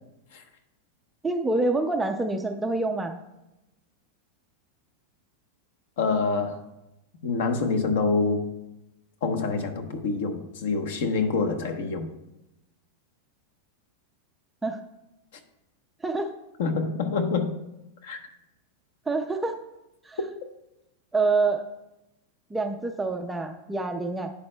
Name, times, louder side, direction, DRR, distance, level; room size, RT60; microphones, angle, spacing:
voice 1, 1.2-3.2 14.6-14.8 16.0-16.3 19.1-19.6 20.0-20.2 21.1-21.6 22.5-24.3, right 3 dB, 5° right, 5 dB, 0.3 m, -26 dB
voice 2, 6.0-6.6 7.2-8.4 9.2-12.1 16.6-17.6 18.0-18.2, left 4 dB, 60° left, 7 dB, 1.0 m, -26 dB
11.5 x 8.5 x 2.2 m, 0.93 s
supercardioid pair, 180°, 0 cm